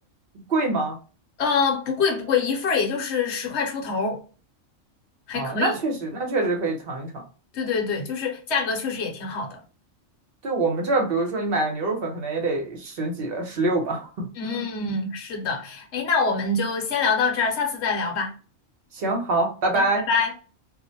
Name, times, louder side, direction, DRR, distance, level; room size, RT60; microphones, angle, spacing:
voice 1, 0.3-1.0 5.3-7.2 10.4-14.1 14.4-14.7 18.9-20.0, right 2 dB, 50° right, 0.8 m, -25 dB
voice 2, 1.4-4.2 5.3-5.7 7.5-9.6 14.4-18.3 19.7-20.3, left 5 dB, 60° left, 0.9 m, -25 dB
2.4 x 2.1 x 2.7 m
omnidirectional pair, 1.4 m